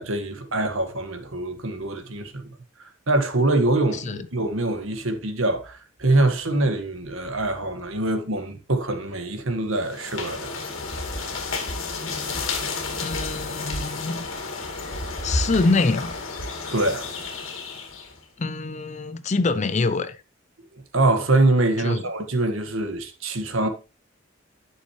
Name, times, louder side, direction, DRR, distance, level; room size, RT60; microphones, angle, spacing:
voice 1, 0.0-2.5 3.1-10.6 11.1-11.4 16.7-17.1 20.9-23.7, right 2 dB, 70° right, 1.6 m, -24 dB
voice 2, 3.9-4.3 13.0-14.2 15.2-16.2 18.4-20.2 21.8-22.0, left 3 dB, 35° left, 0.5 m, -25 dB
sound 1, 9.8-18.2, left 3 dB, 70° left, 2.1 m, -31 dB
11.5 x 6.5 x 3.1 m
head